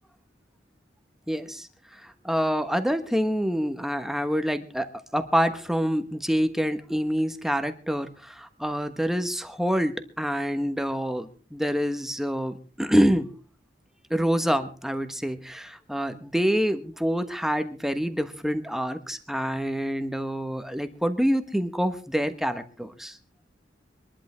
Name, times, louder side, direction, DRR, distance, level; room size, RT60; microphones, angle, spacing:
voice 1, 1.3-13.3 14.1-23.2, equal, ahead, 9 dB, 1.2 m, -27 dB
24.5 x 11.5 x 3.4 m, 0.37 s
head